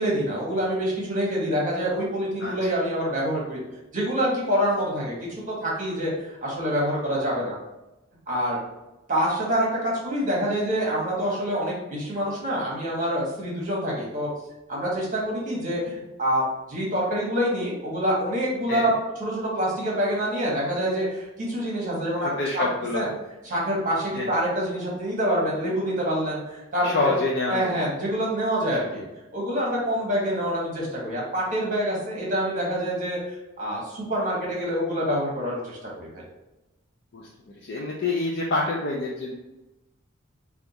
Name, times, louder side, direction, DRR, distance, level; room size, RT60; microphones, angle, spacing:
voice 1, 0.0-3.6 3.9-7.5 8.3-8.6 9.1-14.3 14.7-16.4 16.7-18.9 19.2-22.3 22.5-22.6 22.9-23.1 23.5-27.1 27.5-29.0 29.3-36.2, equal, 40° right, -4 dB, 1.3 m, -26 dB
voice 2, 2.4-2.7 18.7-18.9 22.2-23.1 24.1-24.4 26.8-27.8 37.1-39.3, left 2 dB, 50° left, -3 dB, 0.4 m, -27 dB
3.5 x 2.4 x 3.9 m, 0.99 s
head